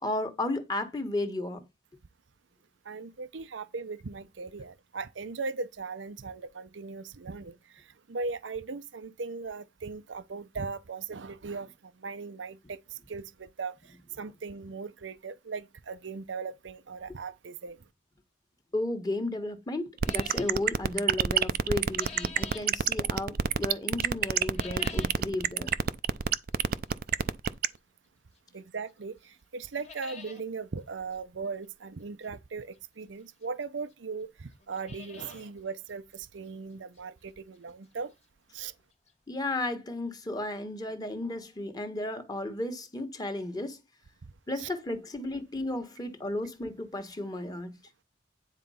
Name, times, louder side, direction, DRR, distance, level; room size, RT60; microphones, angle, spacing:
voice 1, 0.0-1.7 18.7-25.7 39.3-43.8 44.5-47.8, left 2 dB, 20° left, 1.5 m, -34 dB
voice 2, 2.8-17.8 28.5-38.1 38.5-38.7 44.6-44.7, right 4 dB, 85° right, 0.7 m, -38 dB
sound 1, 20.0-20.6 21.6-22.7 24.4-25.2 25.7-25.8 26.6-26.7 28.4-28.5 28.9-29.0 29.2-29.3 29.6-30.4 30.8-30.9 31.1-31.2 32.7-32.8 33.6-33.7 33.9-34.0 34.5-35.5 35.9-36.0 36.5-36.6 37.0-37.1 38.8-38.9 39.1-39.2 39.6-39.7, left 5 dB, 35° left, 1.6 m, -46 dB
sound 2, 20.0-27.7, right 7 dB, 55° right, 0.5 m, -25 dB
9.8 x 4.0 x 5.6 m
head